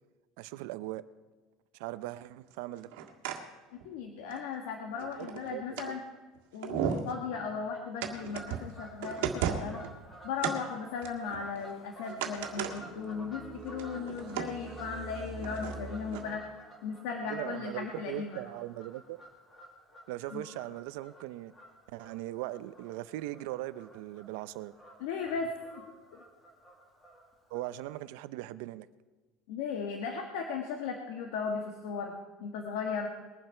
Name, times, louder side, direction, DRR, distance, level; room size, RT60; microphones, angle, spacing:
voice 1, 0.4-1.0 1.8-2.9 5.2-5.6 9.6-9.8 17.2-19.2 20.1-21.5 21.9-24.7 27.5-28.9, right 16 dB, 65° right, 15 dB, 0.6 m, -39 dB
sound 1, 2.8-3.4 3.8-3.9 4.3-4.4 5.0-5.9 6.3-6.4 6.6-7.1 8.0-8.7 9.0-9.9 10.4-10.6 11.0-11.7 12.1-12.8 13.1-13.2 13.6-14.5 15.4-15.7 16.1-16.2, right 8 dB, 90° right, 1.7 m, -35 dB
voice 2, 3.8-6.0 6.5-9.8 10.2-16.4 16.8-18.4 20.3-20.4 25.0-25.5 25.8-25.9 29.5-32.1 32.4-33.1, left 5 dB, 75° left, 3 dB, 1.4 m, -36 dB
Fowl / Bird vocalization bird call bird song, 8.1-28.0, right 1 dB, 15° left, 2.0 m, -53 dB
sound 2, 12.4-16.4, right 3 dB, 20° right, 0.9 m, -45 dB
21.0 x 7.6 x 5.7 m, 1.3 s
cardioid pair, 180°, 0 cm